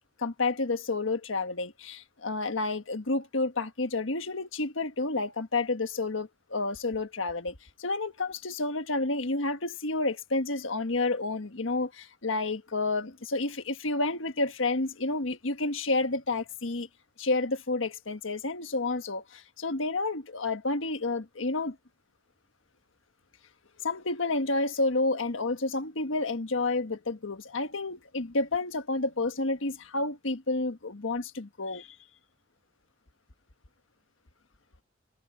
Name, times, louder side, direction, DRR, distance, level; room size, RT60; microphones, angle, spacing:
voice 1, 0.2-16.9 17.2-21.8 23.8-31.9, left 2 dB, 80° left, 1.4 m, -30 dB
head